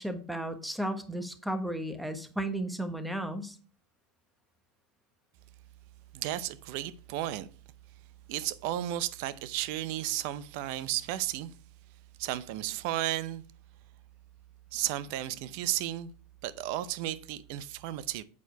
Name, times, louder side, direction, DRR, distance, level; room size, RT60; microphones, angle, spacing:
voice 1, 0.0-3.6, right 1 dB, ahead, 1.2 m, -34 dB
voice 2, 6.1-7.5 8.3-11.6 12.2-13.4 14.7-16.1 16.4-18.2, right 14 dB, 65° right, 0.6 m, -33 dB
8.4 x 4.6 x 4.5 m
hypercardioid pair, 100°, 0 cm